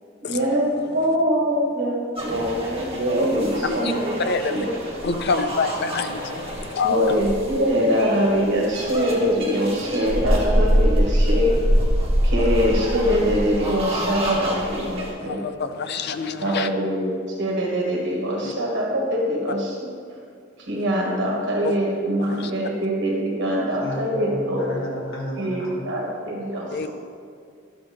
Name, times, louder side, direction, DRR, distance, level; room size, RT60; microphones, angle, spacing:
voice 1, 0.3-0.7 0.9-4.7 6.8-11.6 12.2-15.4 16.4-17.1 17.4-19.9 20.7-24.7 25.4-26.9, equal, 60° right, -2 dB, 1.5 m, -23 dB
sound 1, 2.2-15.1, equal, 30° right, 1.9 m, -25 dB
voice 2, 4.2-4.7 5.0-7.2 15.2-16.7 18.4-18.5 21.6-21.7 22.3-22.5 26.7-26.9, left 4 dB, 55° left, 9 dB, 0.5 m, -26 dB
voice 3, 23.8-25.9, equal, 80° left, -4 dB, 1.8 m, -31 dB
11.5 x 7.2 x 3.4 m, 2.3 s
head